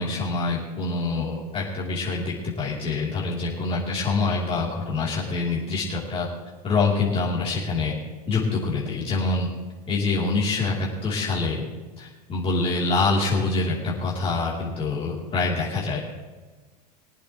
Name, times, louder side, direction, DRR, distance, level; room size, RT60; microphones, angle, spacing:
voice 1, 0.0-6.3 6.6-7.9 8.3-9.5 9.9-11.6 12.0-16.0, left 3 dB, 25° left, -5 dB, 3.2 m, -25 dB
23.5 x 8.5 x 3.1 m, 1.3 s
hypercardioid pair, 100°, 21 cm